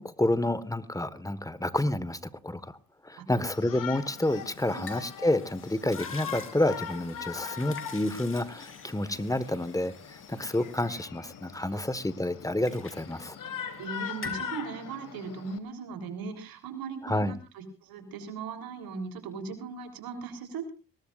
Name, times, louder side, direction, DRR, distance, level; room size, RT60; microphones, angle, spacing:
voice 1, 0.0-2.8 3.0-13.4 17.0-17.3, left 1 dB, 10° left, 14 dB, 1.6 m, -29 dB
Shout, 3.5-15.6, left 8 dB, 65° left, 1.9 m, -41 dB
sound 1, 4.1-11.8 12.2-13.9 14.1-14.5, left 4 dB, 35° left, 3.4 m, -48 dB
voice 2, 13.8-20.7, right 5 dB, 80° right, 7 dB, 3.8 m, -38 dB
21.0 x 18.5 x 2.5 m, 0.33 s
supercardioid pair, 55°, 35 cm